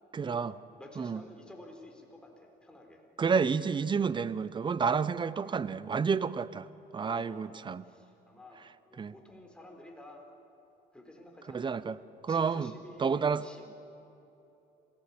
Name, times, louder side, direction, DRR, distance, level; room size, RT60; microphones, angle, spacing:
voice 1, 0.1-0.5 1.0-1.2 3.2-6.7 6.9-7.8 9.0-9.1 11.5-12.0 12.3-12.7 13.0-13.4, right 5 dB, 30° right, 17 dB, 0.8 m, -30 dB
voice 2, 0.7-3.0 7.1-7.6 7.8-8.6 8.9-10.2 10.9-13.7, left 1 dB, 5° left, 1 dB, 4.3 m, -51 dB
26.5 x 17.0 x 8.7 m, 3.0 s
cardioid pair, 110°, 17 cm